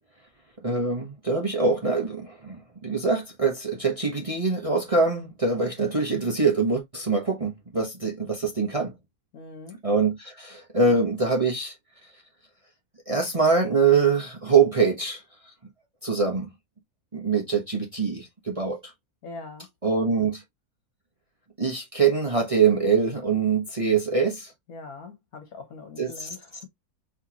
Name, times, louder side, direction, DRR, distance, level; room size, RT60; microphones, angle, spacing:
voice 1, 0.6-8.9 9.8-11.7 13.1-15.2 16.0-16.5 17.1-18.8 19.8-20.4 21.6-24.5 26.0-26.3, right 4 dB, 25° right, 1.0 m, -24 dB
voice 2, 9.3-9.8 19.2-19.7 24.7-26.7, left 3 dB, 65° left, 1.6 m, -42 dB
4.5 x 3.5 x 2.9 m
omnidirectional pair, 1.7 m